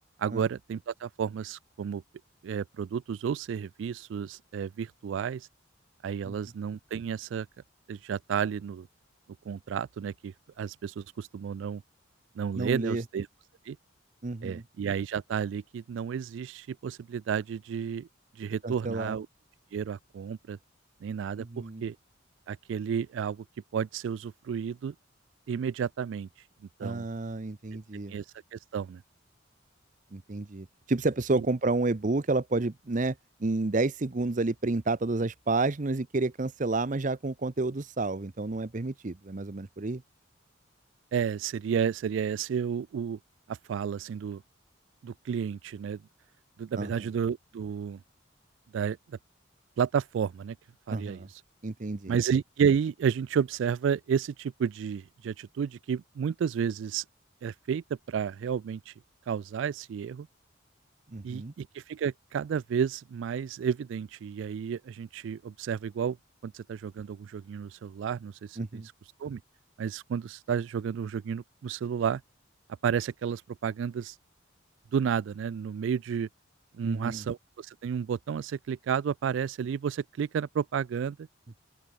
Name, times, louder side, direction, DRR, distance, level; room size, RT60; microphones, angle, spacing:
voice 1, 0.2-2.0 2.4-5.5 6.0-7.5 7.9-8.9 9.5-11.8 12.4-13.3 13.7-13.8 14.4-18.1 18.4-19.3 19.7-20.6 21.0-22.0 22.5-23.4 23.7-24.9 25.5-26.3 26.8-27.0 28.1-28.3 28.5-29.0 31.3-31.5 41.1-43.2 43.5-44.4 45.0-46.0 46.6-48.0 48.7-49.2 49.8-50.6 50.9-51.4 52.1-57.0 57.4-58.9 59.3-60.3 61.2-66.2 66.4-68.8 69.2-69.4 69.8-72.2 72.8-74.2 74.9-76.3 76.8-81.3, right 7 dB, 70° right, 0.3 m, -31 dB
voice 2, 12.6-13.0 14.2-14.6 18.6-19.2 21.4-21.8 26.8-28.1 30.1-33.1 33.4-40.0 46.8-46.9 50.9-51.3 51.6-52.1 61.1-61.5 68.6-68.9 76.8-77.2, right 3 dB, 40° right, 0.7 m, -30 dB
open air
head